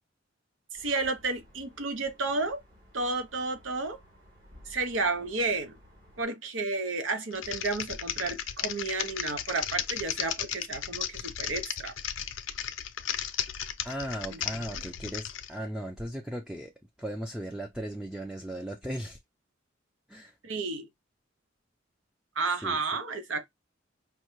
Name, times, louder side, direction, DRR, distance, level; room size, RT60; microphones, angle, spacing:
sound 1, 0.7-6.3, equal, 50° right, 2.8 m, -56 dB
voice 1, 0.7-2.6 2.9-4.0 4.7-5.8 6.2-11.9 14.3-14.8 20.4-20.9 22.4-23.4, right 3 dB, 80° right, 0.9 m, -32 dB
Typing, 7.3-15.5, left 10 dB, 85° left, 0.6 m, -35 dB
voice 2, 13.8-16.7 17.0-19.2 20.1-20.3 22.6-22.8, right 1 dB, 5° right, 0.4 m, -37 dB
5.2 x 2.2 x 3.0 m
head